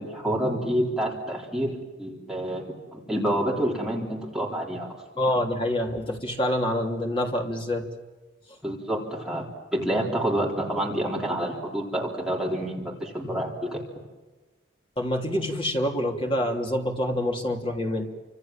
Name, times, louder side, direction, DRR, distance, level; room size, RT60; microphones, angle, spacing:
voice 1, 0.0-2.6 2.9-4.9 8.6-13.8, right 1 dB, 5° right, -3 dB, 4.1 m, -28 dB
voice 2, 5.2-7.9 13.3-13.4 15.0-18.1, left 1 dB, 25° left, 1 dB, 3.2 m, -26 dB
29.0 x 26.0 x 7.5 m, 1.2 s
head